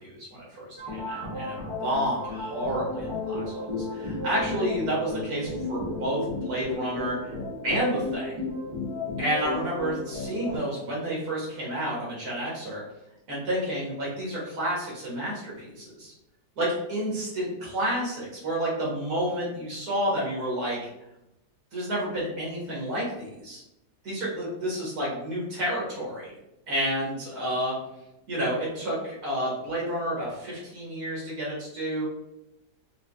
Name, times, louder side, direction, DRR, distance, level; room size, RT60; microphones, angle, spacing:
voice 1, 0.0-7.3 7.6-8.4 9.2-12.8 13.3-16.1 16.6-20.8 21.7-23.6 24.0-26.3 26.7-27.8 28.3-32.1, right 1 dB, 65° right, -5 dB, 1.8 m, -30 dB
sound 1, 0.8-10.6, left 2 dB, 40° right, 0.4 m, -33 dB
4.6 x 2.2 x 2.5 m, 0.89 s
omnidirectional pair, 1.8 m